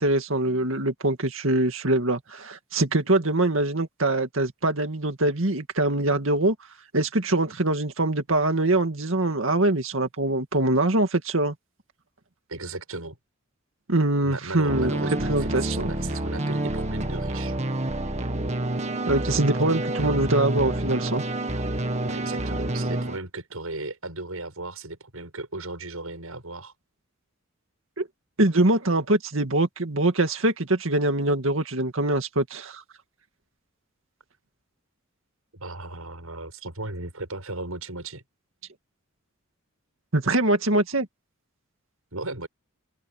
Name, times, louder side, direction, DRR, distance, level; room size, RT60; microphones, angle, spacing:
voice 1, 0.0-6.6 6.9-11.5 13.9-14.9 15.3-15.9 19.1-21.2 28.0-28.1 28.4-32.8 40.1-41.1, right 2 dB, 65° right, 2.2 m, -23 dB
voice 2, 12.5-13.2 14.2-17.5 22.0-26.7 35.5-38.2 42.1-42.5, right 2 dB, 90° right, 7.7 m, -36 dB
sound 1, 14.7-23.2, right 1 dB, 30° right, 1.9 m, -28 dB
open air
head